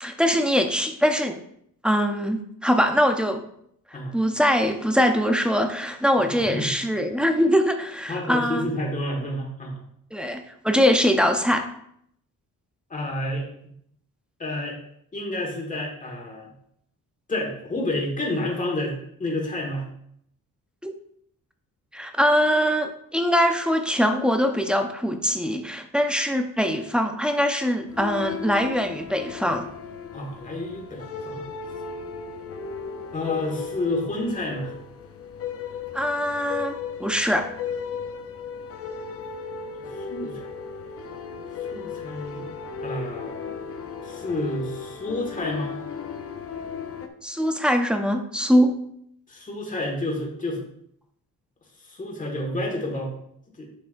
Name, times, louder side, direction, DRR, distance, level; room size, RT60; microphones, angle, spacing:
voice 1, 0.0-1.4 1.8-3.4 4.1-8.7 10.1-11.7 20.8-20.9 21.9-29.7 35.9-37.5 47.2-48.7, equal, 5° right, 5 dB, 0.5 m, -22 dB
voice 2, 6.1-6.7 8.1-9.8 12.9-13.5 14.4-14.8 15.1-16.5 17.3-19.9 30.1-31.4 33.1-34.8 39.8-40.5 41.7-42.5 42.8-43.6 44.0-45.7 49.3-50.6 51.8-53.1 53.6-53.7, left 1 dB, 25° left, 0 dB, 1.7 m, -30 dB
sound 1, 27.9-47.1, left 6 dB, 45° left, 0.7 m, -35 dB
9.8 x 6.3 x 2.6 m, 0.70 s
wide cardioid pair, 175°, 34 cm